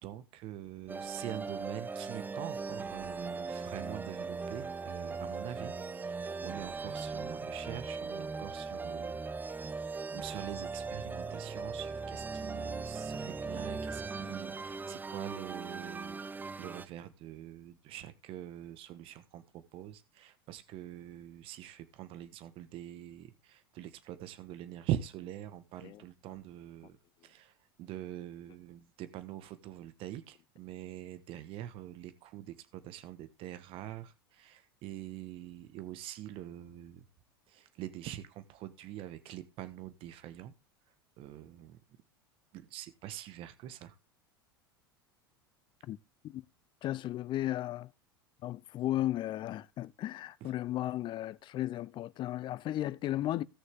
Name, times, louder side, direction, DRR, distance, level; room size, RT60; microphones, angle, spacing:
voice 1, 0.0-9.2 9.4-9.5 10.1-27.0 27.2-37.0 37.5-40.5 41.2-41.8 42.5-43.9 50.4-50.5, right 12 dB, 45° right, 1.5 m, -44 dB
sound 1, 0.9-16.9, right 4 dB, 15° right, 0.7 m, -39 dB
voice 2, 46.8-47.9 48.4-53.4, left 14 dB, 40° left, 0.7 m, -35 dB
17.0 x 6.4 x 3.7 m
hypercardioid pair, 85°, 12 cm